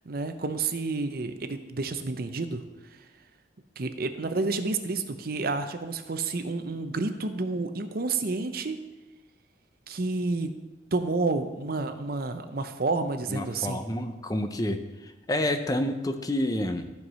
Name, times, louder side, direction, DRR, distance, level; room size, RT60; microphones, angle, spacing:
voice 1, 0.1-2.6 3.8-8.8 9.9-10.5 10.9-13.8, right 3 dB, 55° right, 9 dB, 0.7 m, -30 dB
voice 2, 13.3-16.9, left 1 dB, 20° left, 7 dB, 0.6 m, -29 dB
14.0 x 4.7 x 5.6 m, 1.1 s
head